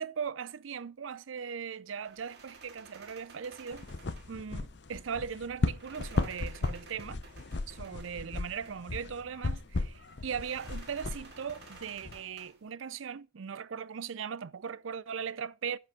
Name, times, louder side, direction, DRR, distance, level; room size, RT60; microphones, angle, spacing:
voice 1, 0.0-3.9 4.3-7.2 7.7-15.8, right 7 dB, 85° right, 0.5 m, -39 dB
sound 1, 2.0-12.7, right 3 dB, 55° right, 2.2 m, -55 dB
sound 2, 3.7-12.2, left 2 dB, 60° left, 0.7 m, -36 dB
10.5 x 5.4 x 6.4 m
head